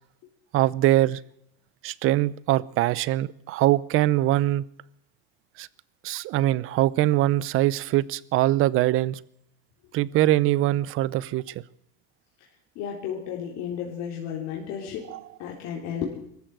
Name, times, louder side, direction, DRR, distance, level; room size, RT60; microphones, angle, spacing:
voice 1, 0.5-1.2 1.8-4.6 5.6-5.7 6.0-9.2 9.9-11.5 15.1-15.2, right 15 dB, 45° right, 20 dB, 0.7 m, -22 dB
voice 2, 12.8-15.1 15.4-16.2, left 8 dB, 55° left, -3 dB, 4.0 m, -33 dB
23.5 x 14.0 x 7.8 m, 0.76 s
cardioid pair, 150°, 31 cm